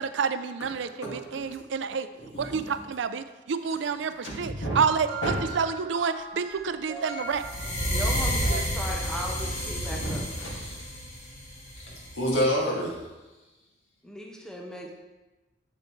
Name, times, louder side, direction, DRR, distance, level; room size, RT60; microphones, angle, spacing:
voice 1, 0.0-2.1 2.4-7.5 8.4-8.6, right 6 dB, 70° right, 11 dB, 0.4 m, -29 dB
voice 2, 1.0-1.4 2.1-2.6 4.6-4.8 5.2-5.3 9.9-11.0 12.1-13.0, equal, 80° left, -4 dB, 2.1 m, -29 dB
sound 1, 4.7-8.2 9.3-9.5, right 4 dB, 25° right, 2.6 m, -40 dB
sound 2, 7.3-12.4, equal, 35° left, 1.7 m, -30 dB
voice 3, 7.9-10.3 14.0-14.9, left 1 dB, 5° left, 0 dB, 0.6 m, -37 dB
7.6 x 7.6 x 3.1 m, 1.1 s
head